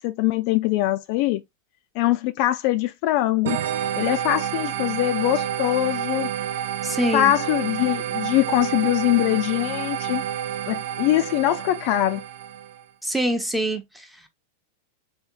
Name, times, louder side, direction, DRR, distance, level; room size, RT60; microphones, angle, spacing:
voice 1, 0.0-1.4 2.0-3.6 4.0-6.3 7.1-10.2 10.7-12.2, left 15 dB, 55° left, 0.3 m, -22 dB
sound 1, 3.5-12.8, right 10 dB, 65° right, 0.4 m, -29 dB
voice 2, 6.8-7.4 13.0-14.1, right 1 dB, 5° right, 0.8 m, -25 dB
3.6 x 2.8 x 2.3 m
hypercardioid pair, 95°, 0 cm